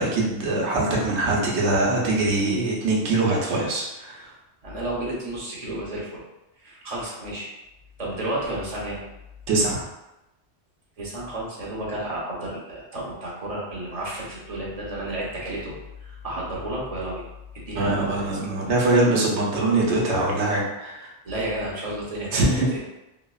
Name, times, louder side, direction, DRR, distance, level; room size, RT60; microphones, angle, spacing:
voice 1, 0.0-4.3 9.5-9.8 17.8-21.1 22.3-22.7, right 2 dB, 75° right, -2 dB, 1.0 m, -23 dB
voice 2, 4.6-6.2 6.6-7.5 8.0-9.0 11.0-15.7 16.0-17.2 17.5-18.3 21.2-22.5, right 1 dB, 40° right, -5 dB, 0.7 m, -31 dB
3.0 x 2.0 x 2.3 m, 0.94 s
omnidirectional pair, 1.2 m